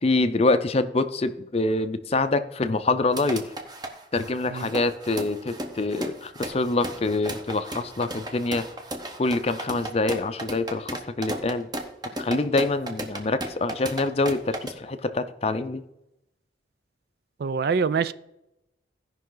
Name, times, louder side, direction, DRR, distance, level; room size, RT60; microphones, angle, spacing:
voice 1, 0.0-3.5 4.1-8.7 9.2-11.7 12.2-15.8, left 2 dB, 35° left, 11 dB, 0.5 m, -25 dB
sound 1, 3.1-14.7, right 1 dB, 20° right, 1.0 m, -35 dB
voice 2, 17.4-18.1, right 5 dB, 55° right, 15 dB, 0.4 m, -25 dB
16.0 x 5.5 x 3.9 m, 0.86 s
head